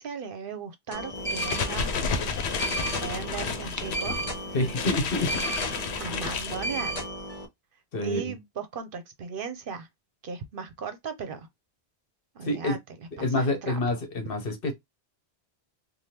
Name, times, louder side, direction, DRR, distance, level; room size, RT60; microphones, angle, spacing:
voice 1, 0.0-1.9 2.6-4.2 4.6-4.7 5.7-7.0 8.0-9.9 10.2-11.5 12.3-13.8, right 5 dB, 60° right, 0.8 m, -37 dB
sound 1, 0.9-7.4, right 1 dB, 40° left, 1.1 m, -34 dB
sound 2, 1.2-7.1, left 5 dB, 85° left, 0.9 m, -32 dB
voice 2, 4.5-5.3 7.9-8.3 12.4-12.8 13.2-14.7, left 1 dB, 60° left, 1.0 m, -27 dB
3.4 x 2.3 x 2.7 m
omnidirectional pair, 1.1 m